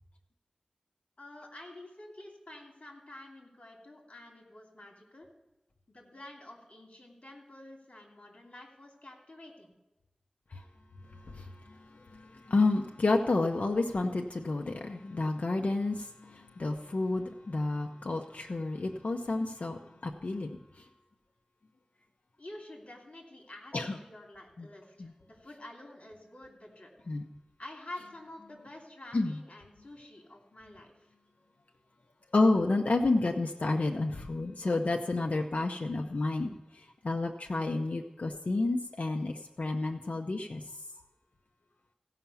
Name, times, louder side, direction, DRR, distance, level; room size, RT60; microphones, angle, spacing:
voice 1, 1.2-5.3 5.9-9.7 22.4-26.9 27.6-31.1, left 1 dB, 60° left, 0 dB, 2.9 m, -49 dB
voice 2, 12.1-20.6 23.7-23.9 24.6-24.7 25.0-25.1 27.1-27.2 29.1-29.3 32.3-36.5 37.0-40.6, left 2 dB, 90° left, 2 dB, 0.7 m, -30 dB
16.0 x 5.8 x 7.0 m, 0.95 s
wide cardioid pair, 55°, 2 cm